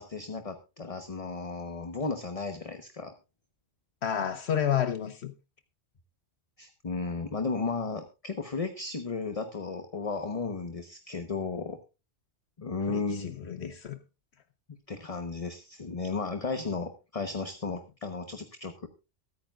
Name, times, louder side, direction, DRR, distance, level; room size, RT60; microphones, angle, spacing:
voice 1, 0.0-3.1 6.6-11.8 12.6-13.7 14.9-18.9, left 4 dB, 30° left, 1.1 m, -34 dB
voice 2, 4.0-5.3 12.9-14.0, left 9 dB, 65° left, 1.0 m, -30 dB
23.0 x 9.0 x 2.4 m
omnidirectional pair, 1.2 m